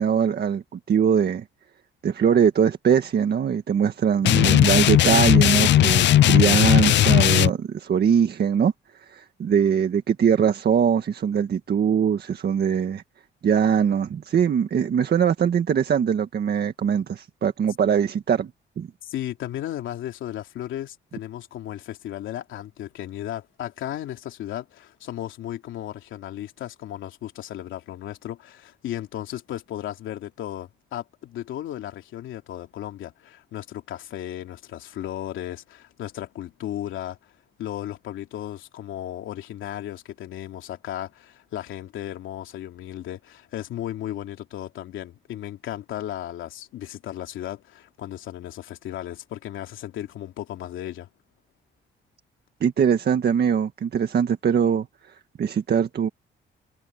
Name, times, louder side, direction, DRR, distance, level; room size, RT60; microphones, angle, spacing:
voice 1, 0.0-1.4 2.0-13.0 13.4-18.5 18.8-18.9 52.6-56.1, right 7 dB, 55° right, 1.7 m, -22 dB
sound 1, 4.2-7.5, left 12 dB, 65° left, 0.6 m, -17 dB
voice 2, 19.0-37.3 37.6-51.1, left 12 dB, 80° left, 2.9 m, -35 dB
cardioid pair, 90°, 20 cm